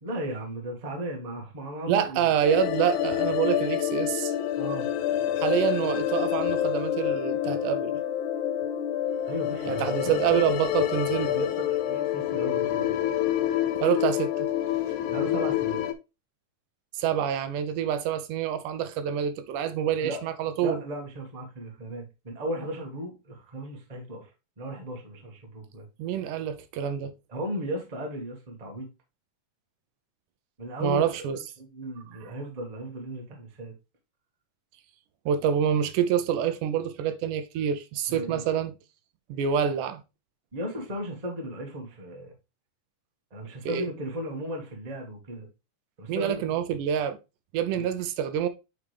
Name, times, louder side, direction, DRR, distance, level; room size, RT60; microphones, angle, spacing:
voice 1, 0.0-2.3 4.6-4.9 9.3-10.2 11.2-12.9 15.1-15.8 20.0-20.2 20.6-24.3 24.6-25.9 27.3-28.9 30.6-31.1 31.6-33.7 38.1-38.5 40.5-42.3 43.3-45.5 46.0-46.4 47.7-47.9, right 1 dB, 55° right, 0.4 m, -35 dB
voice 2, 1.9-4.5 5.4-7.9 9.7-11.4 13.8-14.5 16.9-20.8 26.0-27.1 30.8-31.4 35.3-38.7 39.3-40.0 43.7-43.9 46.1-47.2 47.5-48.5, right 9 dB, 80° right, 2.0 m, -27 dB
sound 1, 2.4-15.9, left 11 dB, 80° left, 1.8 m, -27 dB
8.7 x 3.5 x 3.3 m
omnidirectional pair, 3.8 m